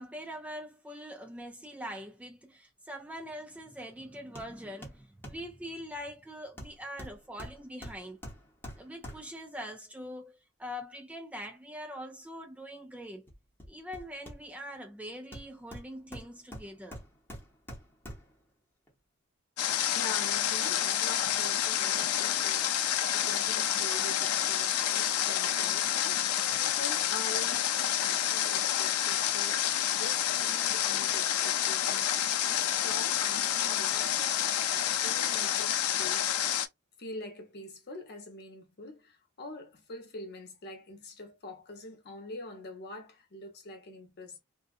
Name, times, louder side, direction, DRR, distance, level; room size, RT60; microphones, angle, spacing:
voice 1, 0.0-8.2 8.8-13.3 13.7-17.0, equal, 5° right, 0.3 m, -43 dB
Hammer, 4.3-4.5 4.8-5.5 6.6-9.5 13.3-14.7 15.3-18.4 18.9-19.0, equal, 10° left, 0.9 m, -46 dB
Water, 19.6-36.7, left 10 dB, 85° left, 0.4 m, -29 dB
voice 2, 19.9-36.3 37.0-44.4, left 2 dB, 50° left, 0.9 m, -45 dB
2.6 x 2.4 x 2.4 m
head